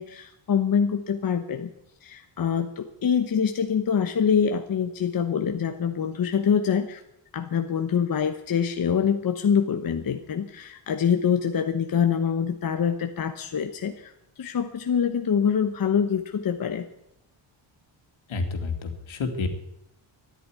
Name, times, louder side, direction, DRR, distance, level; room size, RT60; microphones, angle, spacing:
voice 1, 0.0-1.7 2.0-7.0 7.3-14.1 14.4-16.9, left 7 dB, 45° left, 6 dB, 1.0 m, -25 dB
voice 2, 18.3-19.5, left 4 dB, 70° left, 4 dB, 2.8 m, -29 dB
12.5 x 11.0 x 9.6 m, 0.83 s
wide cardioid pair, 125°, 49 cm